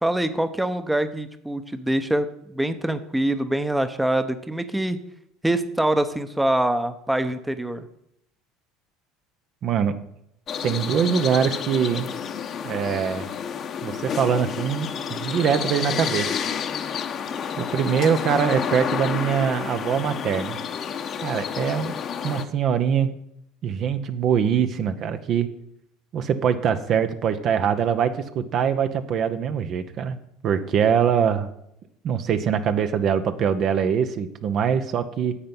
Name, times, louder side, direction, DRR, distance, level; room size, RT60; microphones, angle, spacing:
voice 1, 0.0-5.0 5.4-7.8, right 1 dB, 5° right, 10 dB, 0.9 m, -24 dB
voice 2, 9.6-9.9 10.6-12.1 12.6-13.3 13.8-16.4 17.6-20.6 21.2-21.9 22.2-23.1 23.6-25.5 26.1-30.2 30.4-31.5 32.0-35.4, right 7 dB, 50° right, 9 dB, 0.9 m, -23 dB
sound 1, 10.5-22.4, left 7 dB, 45° left, 1.1 m, -30 dB
10.0 x 7.7 x 5.6 m, 0.77 s
hypercardioid pair, 80°, 0 cm